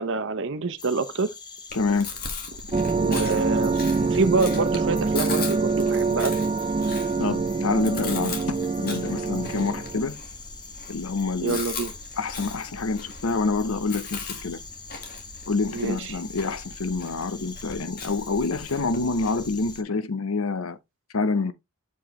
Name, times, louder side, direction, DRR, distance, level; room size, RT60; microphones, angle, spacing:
voice 1, 0.0-1.3 2.9-6.3 9.5-9.7 11.4-11.9 15.7-16.1, right 3 dB, 60° right, 0.8 m, -26 dB
sound 1, 0.8-19.8, left 4 dB, 20° left, 0.9 m, -44 dB
voice 2, 1.7-2.1 7.2-8.4 8.8-10.2 10.9-11.6 12.2-14.6 15.5-20.8 21.1-21.5, left 3 dB, 80° left, 0.8 m, -27 dB
Chewing mastication, 1.7-19.7, left 4 dB, 45° left, 1.8 m, -39 dB
sound 2, 2.7-10.1, right 4 dB, 30° right, 0.4 m, -25 dB
7.2 x 4.9 x 3.1 m
head